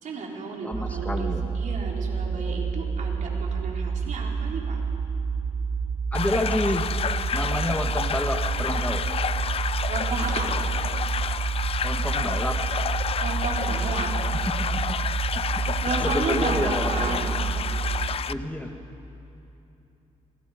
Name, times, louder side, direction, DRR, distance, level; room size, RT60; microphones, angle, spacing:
voice 1, 0.0-4.8 9.9-10.6 13.2-14.1 15.8-17.3, right 4 dB, 70° right, -1 dB, 4.1 m, -32 dB
voice 2, 0.6-1.5 6.1-6.9 7.3-9.0 11.8-12.6 14.5-15.0 15.5-15.7 16.0-17.2 18.3-18.8, left 1 dB, 10° left, 4 dB, 1.4 m, -29 dB
sound 1, 0.7-18.2, right 5 dB, 35° right, 1.7 m, -29 dB
sound 2, 6.1-18.3, left 7 dB, 45° left, 0.5 m, -30 dB
27.0 x 23.0 x 5.0 m, 2.9 s
cardioid pair, 90°, 14 cm